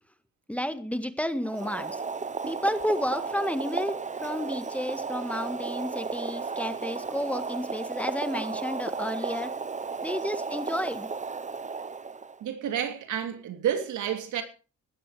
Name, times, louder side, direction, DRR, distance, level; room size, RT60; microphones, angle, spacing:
voice 1, 0.5-2.0 2.5-9.5 10.0-11.1, equal, 5° left, 1.7 m, -31 dB
Boiling, 1.4-12.4, right 4 dB, 25° right, 1.0 m, -34 dB
voice 2, 12.4-14.4, right 9 dB, 75° right, 2.8 m, -30 dB
17.0 x 12.0 x 4.9 m
cardioid pair, 90°, 30 cm